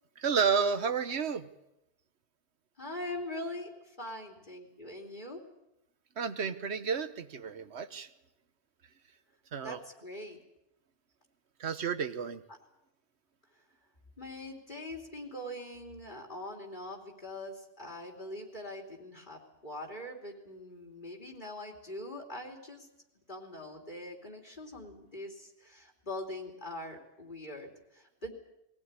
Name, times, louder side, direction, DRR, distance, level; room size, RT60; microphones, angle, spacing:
voice 1, 0.2-1.5 6.2-8.1 9.5-9.8 11.6-12.4, right 6 dB, 75° right, 11 dB, 1.3 m, -31 dB
voice 2, 2.8-5.4 9.6-10.4 14.2-22.9 23.3-28.3, left 1 dB, 45° left, 1 dB, 3.1 m, -42 dB
21.5 x 17.0 x 9.7 m, 0.88 s
omnidirectional pair, 1.1 m